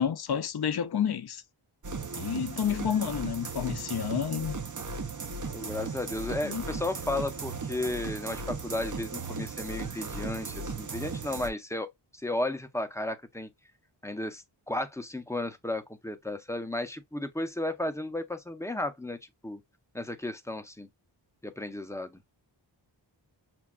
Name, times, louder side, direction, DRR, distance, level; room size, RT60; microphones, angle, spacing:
voice 1, 0.0-1.4 2.2-4.5 6.4-6.6, left 8 dB, 55° left, 0.5 m, -30 dB
sound 1, 1.8-11.5, right 4 dB, 40° right, 0.6 m, -37 dB
voice 2, 5.5-13.5 14.0-19.2 19.4-19.6 19.9-20.9 21.4-22.2, left 1 dB, 5° left, 0.5 m, -34 dB
6.0 x 2.2 x 2.3 m
wide cardioid pair, 75°, 47 cm